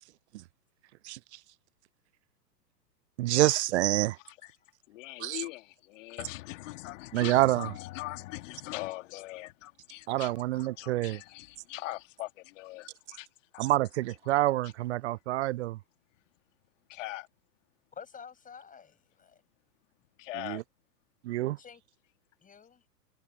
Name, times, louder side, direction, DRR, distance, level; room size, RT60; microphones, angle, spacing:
voice 1, 3.2-4.2 5.2-5.4 7.1-7.7 10.1-11.2 13.6-15.8 20.5-20.6 21.2-21.6, right 16 dB, 45° right, 0.7 m, -27 dB
voice 2, 4.9-13.3 13.5-13.6 14.6-14.7 16.9-17.3 20.2-20.6 21.4-21.5, left 18 dB, 50° left, 2.8 m, -41 dB
voice 3, 17.9-19.4 21.6-21.8 22.4-22.8, left 6 dB, 15° left, 7.7 m, -49 dB
figure-of-eight pair, 105°, 49 cm